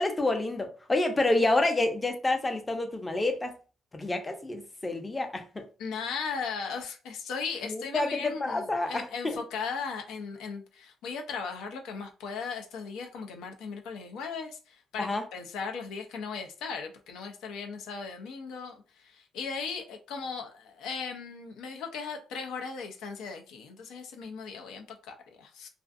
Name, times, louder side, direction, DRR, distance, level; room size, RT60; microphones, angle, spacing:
voice 1, 0.0-3.5 3.9-5.6 7.7-9.4 15.0-15.2, left 2 dB, 20° left, 0.5 m, -28 dB
voice 2, 5.8-25.7, left 5 dB, 90° left, 0.5 m, -37 dB
2.4 x 2.4 x 2.4 m
cardioid pair, 90°, 0 cm